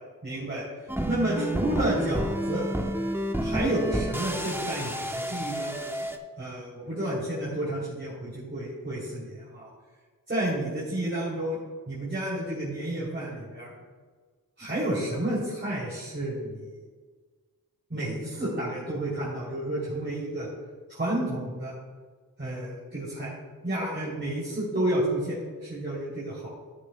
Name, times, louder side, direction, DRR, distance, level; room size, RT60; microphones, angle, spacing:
voice 1, 0.2-0.6 1.0-2.6 3.4-6.0 6.4-9.7 10.3-13.7 14.6-16.7 17.9-20.5 20.9-21.7 22.4-23.3 23.6-26.5, right 1 dB, 30° right, -7 dB, 3.0 m, -31 dB
sound 1, 0.9-6.2, equal, 5° right, 0.9 m, -30 dB
11.5 x 11.5 x 2.2 m, 1.5 s
wide cardioid pair, 70°, 35 cm